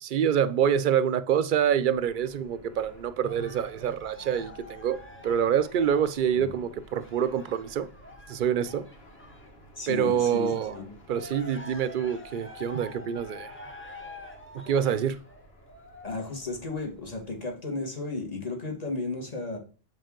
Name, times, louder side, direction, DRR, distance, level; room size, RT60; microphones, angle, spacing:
voice 1, 0.0-7.9 8.3-8.9 9.9-10.8 11.1-13.5 14.5-15.2, right 8 dB, 60° right, 0.6 m, -26 dB
Fixed-wing aircraft airplane, 1.3-17.6, equal, 80° left, 2.1 m, -54 dB
Cheering, 3.2-9.5 9.9-16.5 17.1-17.2, left 1 dB, 15° left, 0.9 m, -47 dB
voice 2, 9.8-10.9 16.0-19.6, left 3 dB, 40° left, 1.8 m, -34 dB
7.5 x 5.2 x 3.7 m
omnidirectional pair, 1.0 m